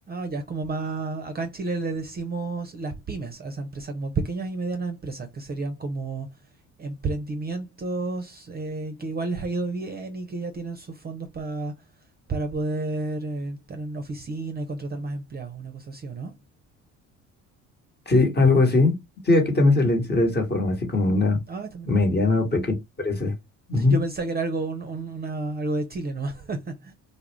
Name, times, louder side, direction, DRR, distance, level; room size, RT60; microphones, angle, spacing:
voice 1, 0.1-6.3 6.8-11.7 12.3-16.3 21.5-21.9 23.7-26.9, right 3 dB, 25° right, 0.6 m, -31 dB
voice 2, 18.1-21.4 21.9-23.3 23.7-24.0, left 2 dB, 25° left, 1.1 m, -21 dB
2.3 x 2.1 x 3.1 m
supercardioid pair, 65°, 36 cm